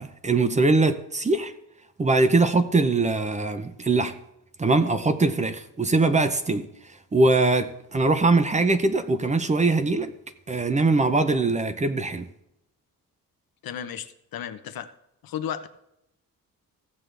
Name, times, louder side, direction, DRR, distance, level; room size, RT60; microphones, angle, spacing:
voice 1, 0.0-1.5 2.0-4.1 4.6-6.7 7.1-10.1 10.5-12.3, right 3 dB, 20° right, 0.6 m, -22 dB
voice 2, 13.6-14.9 15.2-15.7, left 9 dB, 75° left, 0.9 m, -34 dB
15.5 x 7.7 x 3.3 m
wide cardioid pair, 150°, 36 cm